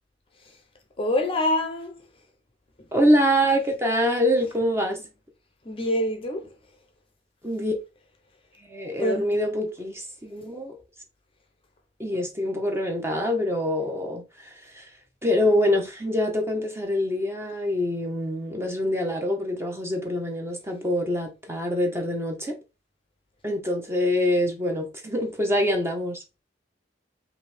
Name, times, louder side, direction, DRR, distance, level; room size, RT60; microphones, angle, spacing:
voice 1, 1.0-2.0 5.6-6.5 9.0-9.4, left 1 dB, 30° left, 0.7 m, -26 dB
voice 2, 2.9-5.0 7.4-7.7 8.7-10.8 12.0-14.8 15.2-22.5 23.4-26.2, equal, 15° right, 1.2 m, -25 dB
5.3 x 2.7 x 3.4 m
head